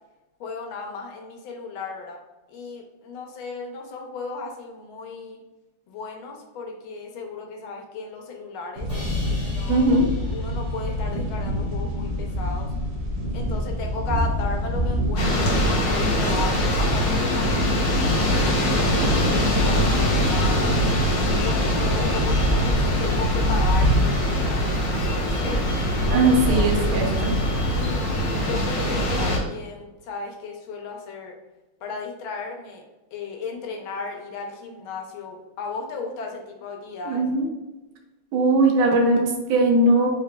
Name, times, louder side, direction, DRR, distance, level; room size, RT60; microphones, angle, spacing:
voice 1, 0.4-2.2 2.5-5.4 5.9-8.9 9.5-12.7 13.3-18.0 18.5-20.8 21.4-24.6 24.9-25.7 26.1-26.7 27.8-28.0 28.4-31.4 31.8-32.8 33.1-37.3, left 4 dB, 75° left, 2 dB, 1.5 m, -35 dB
sound 1, 8.8-28.0, left 1 dB, 55° right, 0.8 m, -26 dB
Crash cymbal, 8.9-12.0, left 1 dB, 5° right, 0.5 m, -43 dB
voice 2, 9.7-10.1 26.1-27.3 37.1-37.5 38.3-40.1, right 2 dB, 75° right, 1 dB, 1.5 m, -20 dB
sound 2, 15.2-29.4, equal, 60° left, 1.0 m, -23 dB
3.8 x 3.2 x 2.2 m, 1.1 s
omnidirectional pair, 2.3 m